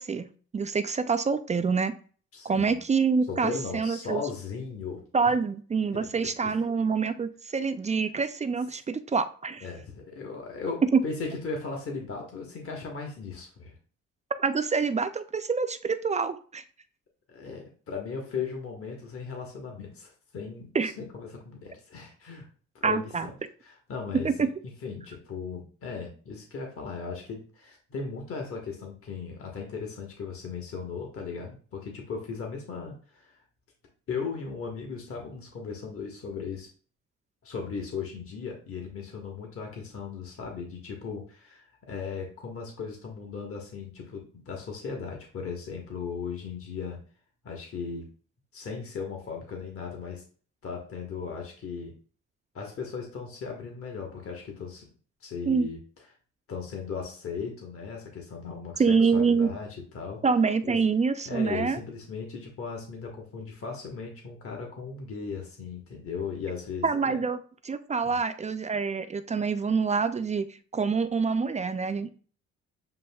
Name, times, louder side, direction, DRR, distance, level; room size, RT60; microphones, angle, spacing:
voice 1, 0.0-1.9 2.4-4.2 5.1-9.6 10.9-11.0 14.4-16.6 20.7-20.9 22.8-23.3 24.2-24.5 55.5-55.7 58.8-59.5 60.2-61.8 66.8-67.4 67.6-72.1, right 5 dB, 25° right, 10 dB, 0.3 m, -26 dB
voice 2, 2.3-2.8 3.3-5.3 6.4-6.6 9.6-13.7 17.3-22.5 22.8-23.3 23.6-24.5 24.8-33.4 34.1-36.7 37.4-47.0 47.4-48.1 48.5-50.2 50.6-51.9 52.5-54.9 55.2-55.8 56.5-60.2 60.6-60.8 61.2-67.2 68.0-68.2, left 5 dB, 45° left, 1 dB, 1.2 m, -37 dB
7.6 x 2.6 x 2.2 m, 0.42 s
cardioid pair, 90°, 30 cm